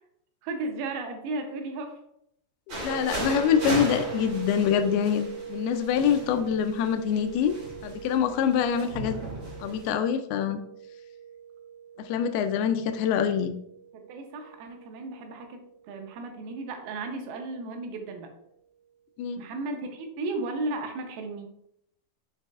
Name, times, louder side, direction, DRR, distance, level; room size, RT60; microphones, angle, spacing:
voice 1, 0.4-2.0 13.9-18.3 19.4-21.5, right 2 dB, 80° right, 4 dB, 2.6 m, -35 dB
voice 2, 2.7-7.5 7.8-9.2 9.6-10.6 12.0-13.5 19.2-19.4, left 8 dB, 85° left, 9 dB, 2.4 m, -25 dB
sound 1, 2.7-9.9, equal, 35° right, 2.4 m, -37 dB
sound 2, 2.8-17.7, right 8 dB, 55° left, 1.9 m, -42 dB
6.6 x 6.1 x 2.4 m, 0.74 s
omnidirectional pair, 4.5 m